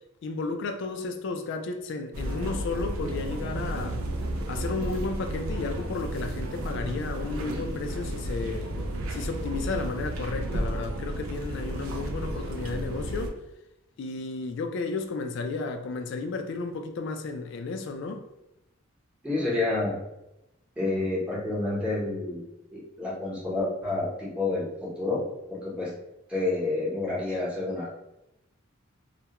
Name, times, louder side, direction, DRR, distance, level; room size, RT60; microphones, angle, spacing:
voice 1, 0.2-4.0 4.5-8.7 9.1-13.4 14.0-18.3, left 3 dB, 60° left, 0.3 m, -33 dB
sound 1, 2.1-13.3, right 1 dB, 85° right, 0.4 m, -32 dB
voice 2, 19.2-19.9 20.8-22.4 22.7-25.2 25.5-26.0 26.3-28.0, left 2 dB, 5° right, 0.8 m, -29 dB
2.3 x 2.1 x 2.8 m
head